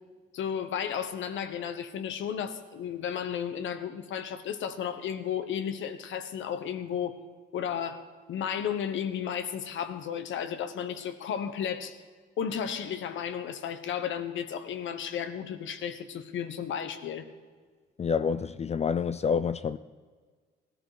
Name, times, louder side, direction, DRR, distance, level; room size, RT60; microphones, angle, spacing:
voice 1, 0.3-7.2 7.5-12.0 12.4-17.3, left 8 dB, 75° left, 1.2 m, -33 dB
voice 2, 18.0-19.8, left 6 dB, 35° left, 0.4 m, -28 dB
16.5 x 13.0 x 5.0 m
cardioid pair, 90°, 20 cm